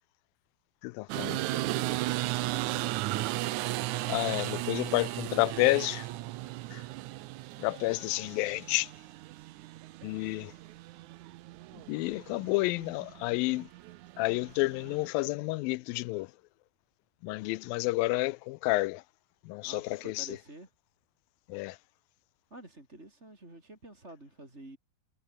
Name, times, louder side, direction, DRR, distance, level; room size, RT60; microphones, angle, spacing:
voice 1, 0.8-1.4 4.1-6.1 6.7-6.8 7.6-8.9 10.0-10.5 11.9-13.7 14.2-16.3 17.2-19.0 19.4-20.4 21.5-21.8, left 21 dB, 85° left, 2.3 m, -30 dB
sound 1, 1.1-15.1, right 17 dB, 80° right, 1.8 m, -36 dB
voice 2, 19.6-20.7 22.5-24.8, right 1 dB, 20° right, 5.3 m, -49 dB
omnidirectional pair, 4.1 m